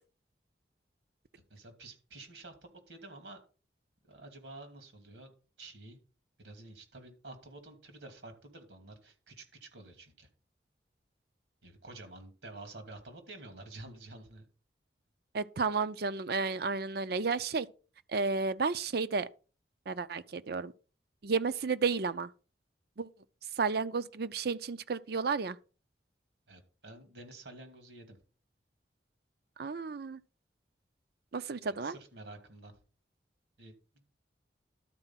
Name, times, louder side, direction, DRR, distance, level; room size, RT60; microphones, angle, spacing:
voice 1, 1.3-3.4 4.1-5.3 5.6-6.0 6.4-10.3 11.6-14.5 26.5-28.2 31.7-32.7 33.6-33.7, right 2 dB, 80° right, 2.6 m, -50 dB
voice 2, 15.3-17.7 18.1-19.3 19.9-20.7 21.2-22.3 23.0-23.1 23.6-25.6 29.6-30.2 31.3-31.9, right 4 dB, 60° right, 0.6 m, -32 dB
12.0 x 4.5 x 5.7 m
head